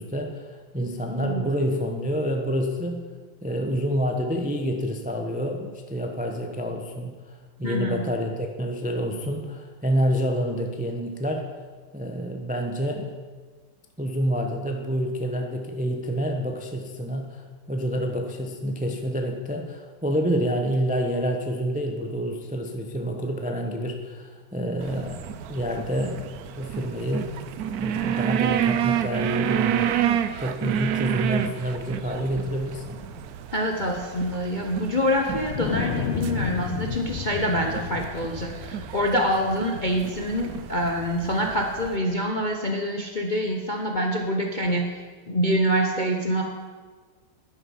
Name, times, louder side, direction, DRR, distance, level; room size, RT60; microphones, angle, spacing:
voice 1, 0.0-3.0 3.4-7.1 7.6-11.5 11.9-13.1 14.0-25.2 25.5-26.2 26.6-27.3 27.8-33.0, equal, 10° right, 3 dB, 0.4 m, -28 dB
voice 2, 7.6-8.0 33.5-45.0 45.3-46.4, equal, 40° left, 2 dB, 0.7 m, -26 dB
sound 1, 24.8-42.0, right 10 dB, 80° right, 0.8 m, -30 dB
Wind, 35.3-41.8, left 7 dB, 90° left, 1.8 m, -33 dB
10.5 x 9.6 x 7.2 m, 1.5 s
omnidirectional pair, 2.3 m